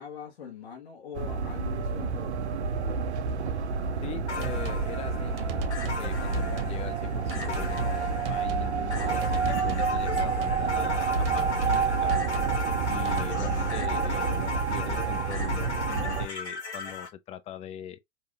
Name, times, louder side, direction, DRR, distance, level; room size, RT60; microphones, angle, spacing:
voice 1, 0.0-2.5, left 7 dB, 70° left, 1.2 m, -42 dB
sound 1, 1.1-16.3, right 5 dB, 80° right, 0.6 m, -29 dB
voice 2, 4.0-5.7 6.0-9.3 9.6-12.3 12.9-18.0, left 10 dB, 20° left, 0.4 m, -42 dB
sound 2, 4.3-17.1, left 4 dB, 85° left, 1.7 m, -37 dB
sound 3, 4.4-4.9 5.4-6.0 6.3-6.8 7.3-8.0 8.2-8.7 9.2-9.9 10.2-10.6 11.1-12.6 13.1-13.3, right 2 dB, 65° right, 1.0 m, -34 dB
5.2 x 2.8 x 2.3 m
figure-of-eight pair, 100°, 33 cm